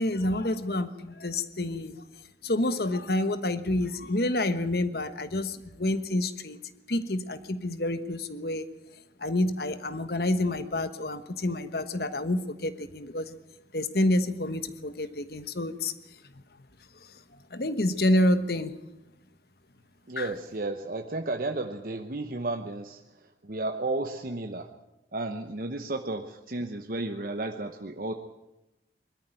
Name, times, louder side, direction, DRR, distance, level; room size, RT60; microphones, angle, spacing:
voice 1, 0.0-2.0 2.4-6.6 6.9-8.7 9.2-13.4 13.7-15.9 17.5-18.7 20.2-20.3, left 1 dB, 60° left, 11 dB, 1.2 m, -28 dB
voice 2, 20.1-23.0 23.4-24.7 25.1-28.1, right 2 dB, 50° right, 5 dB, 1.0 m, -33 dB
21.5 x 13.5 x 9.0 m, 0.96 s
head